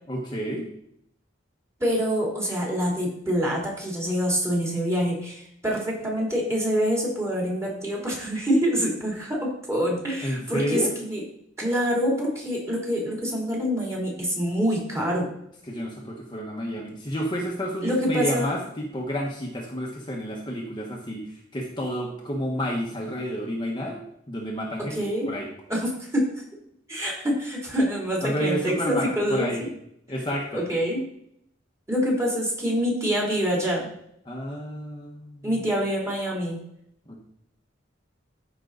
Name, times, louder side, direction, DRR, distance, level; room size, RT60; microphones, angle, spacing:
voice 1, 0.1-0.7 10.2-11.0 15.7-24.0 24.3-25.5 28.2-29.6 30.1-30.7 34.2-35.5 37.1-37.2, equal, 25° left, -2 dB, 1.3 m, -30 dB
voice 2, 1.8-11.2 11.6-15.3 17.8-18.5 24.9-25.3 25.7-26.3 26.9-29.7 30.5-31.0 31.9-33.9 35.4-36.6, equal, 15° right, -3 dB, 3.1 m, -26 dB
13.5 x 5.6 x 4.0 m, 0.72 s
head